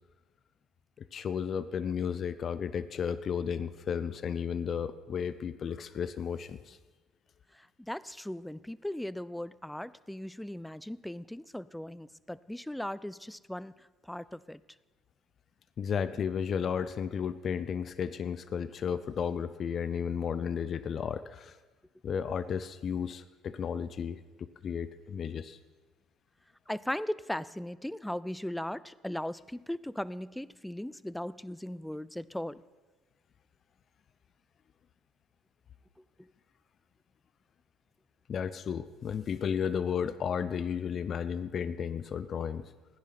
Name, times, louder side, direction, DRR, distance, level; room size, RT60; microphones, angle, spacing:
voice 1, 1.1-6.8 15.8-21.5 22.0-24.2 24.6-25.6 38.3-42.7, left 7 dB, 50° left, 14 dB, 0.6 m, -33 dB
voice 2, 7.5-14.6 26.7-32.6 36.2-36.3, left 1 dB, 5° left, 19 dB, 0.4 m, -38 dB
15.5 x 10.0 x 5.9 m, 1.3 s
hypercardioid pair, 60°, 0 cm